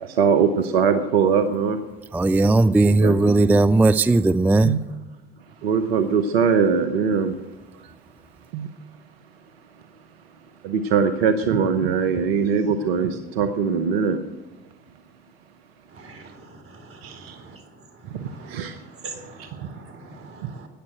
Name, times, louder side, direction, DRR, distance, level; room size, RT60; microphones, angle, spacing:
voice 1, 0.0-1.8 2.9-3.5 4.6-4.8 5.6-7.4 7.8-7.9 8.5-8.7 10.6-14.2 17.0-17.4 18.1-18.8 19.4-19.5 20.4-20.5, right 6 dB, 75° right, 8 dB, 0.9 m, -22 dB
voice 2, 2.1-4.7, right 2 dB, 5° right, 14 dB, 0.3 m, -17 dB
voice 3, 16.7-17.1 18.3-18.5 19.0-20.7, right 3 dB, 45° right, 6 dB, 3.6 m, -42 dB
14.0 x 9.7 x 7.7 m, 1.2 s
hypercardioid pair, 65°, 30 cm